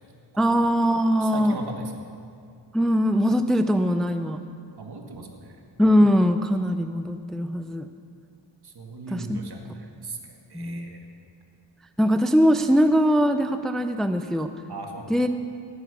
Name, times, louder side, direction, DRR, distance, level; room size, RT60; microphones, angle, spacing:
voice 1, 0.4-1.6 2.7-4.4 5.8-7.9 9.1-9.4 10.5-11.0 12.0-14.5 15.1-15.3, equal, ahead, 9 dB, 0.5 m, -21 dB
voice 2, 1.2-1.9 4.8-5.6 8.6-11.1 14.7-15.1, right 3 dB, 60° right, 3 dB, 1.9 m, -38 dB
17.5 x 9.3 x 6.9 m, 2.3 s
wide cardioid pair, 85°, 44 cm